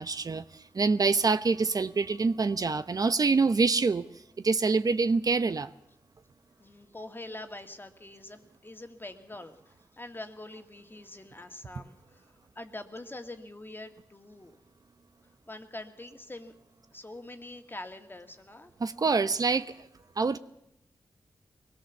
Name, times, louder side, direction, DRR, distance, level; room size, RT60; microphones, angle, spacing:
voice 1, 0.0-4.1 4.4-5.7 18.8-19.9 20.2-20.4, right 4 dB, 50° right, 11 dB, 0.8 m, -26 dB
voice 2, 6.6-14.6 15.5-16.5 16.9-18.7, left 2 dB, 25° left, 6 dB, 2.1 m, -44 dB
21.5 x 17.5 x 7.2 m, 0.80 s
cardioid pair, 50°, 8 cm